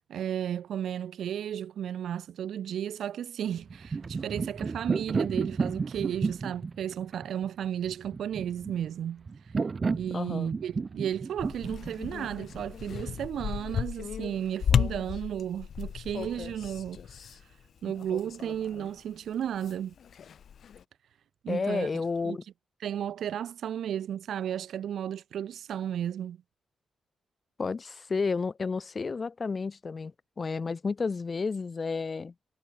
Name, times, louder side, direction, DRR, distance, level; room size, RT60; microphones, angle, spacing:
voice 1, 0.1-9.3 9.9-17.0 17.8-19.9 21.4-21.9 22.2-22.4 22.8-26.4, right 10 dB, 80° right, 0.7 m, -34 dB
sound 1, 3.6-13.3, right 4 dB, 45° right, 2.2 m, -33 dB
voice 2, 10.1-10.5 17.8-17.9 21.5-22.4 27.6-32.3, left 4 dB, 45° left, 1.9 m, -31 dB
sound 2, 11.4-19.0 19.3-20.8, left 8 dB, 70° left, 1.4 m, -34 dB
cardioid pair, 60°, 0 cm